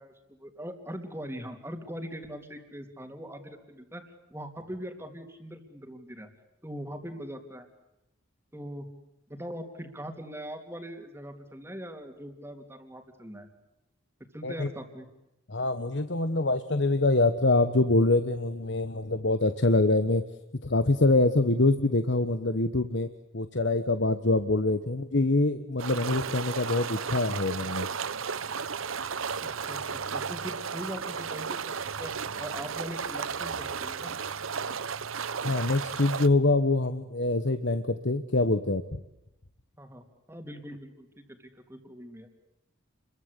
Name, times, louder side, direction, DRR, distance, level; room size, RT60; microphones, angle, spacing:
voice 1, 0.0-4.0 4.3-6.3 6.6-7.6 8.5-8.9 9.3-13.5 14.3-15.1 29.7-32.1 32.4-34.1 39.8-42.3, equal, 10° right, 6 dB, 3.0 m, -41 dB
voice 2, 15.5-20.2 20.6-23.1 23.3-27.9 35.4-39.0, left 2 dB, 60° left, 10 dB, 1.2 m, -25 dB
sound 1, 25.8-36.3, right 6 dB, 85° right, 1.0 m, -34 dB
29.5 x 23.0 x 8.3 m, 0.88 s
head